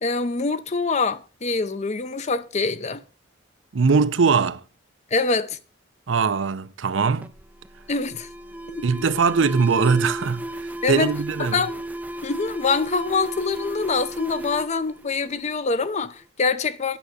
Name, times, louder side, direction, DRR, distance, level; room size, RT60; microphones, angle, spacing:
voice 1, 0.0-3.0 5.1-5.6 7.9-8.3 8.7-9.0 10.8-11.1 11.4-11.8 12.2-17.0, left 4 dB, 35° left, 0.6 m, -25 dB
voice 2, 3.7-4.6 6.1-7.3 8.8-11.7, right 5 dB, 75° right, 0.6 m, -21 dB
Alarm, 7.2-15.8, right 1 dB, 10° right, 0.4 m, -34 dB
9.2 x 5.9 x 6.5 m
head